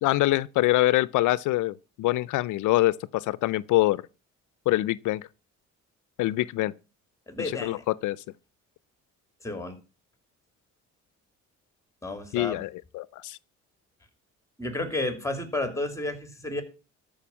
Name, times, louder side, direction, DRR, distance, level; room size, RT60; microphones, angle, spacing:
voice 1, 0.0-4.0 4.7-5.3 6.2-6.7 7.4-8.2 12.3-13.4, left 17 dB, 80° left, 0.5 m, -25 dB
voice 2, 7.3-7.8 9.4-9.8 12.0-12.6 14.6-16.6, left 2 dB, 10° left, 2.8 m, -31 dB
13.0 x 5.1 x 7.2 m
cardioid pair, 90°, 30 cm